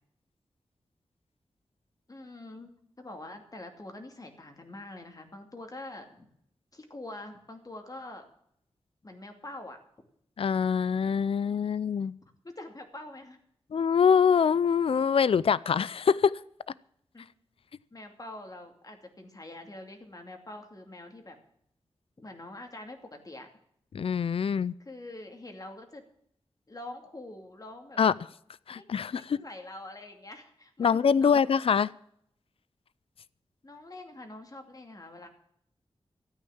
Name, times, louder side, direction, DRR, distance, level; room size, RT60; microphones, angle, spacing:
voice 1, 2.1-2.7 3.0-6.3 6.7-8.2 9.0-9.8 12.4-13.4 17.1-17.3 17.9-21.4 22.2-23.5 24.8-26.0 26.7-28.0 28.7-31.6 33.6-35.3, left 2 dB, 35° left, 5 dB, 2.6 m, -45 dB
voice 2, 10.4-12.1 13.7-16.3 23.9-24.7 28.0-28.1 28.7-29.4 30.8-31.9, left 6 dB, 65° left, 20 dB, 0.4 m, -24 dB
13.5 x 9.3 x 7.2 m, 0.69 s
wide cardioid pair, 90°, 10 cm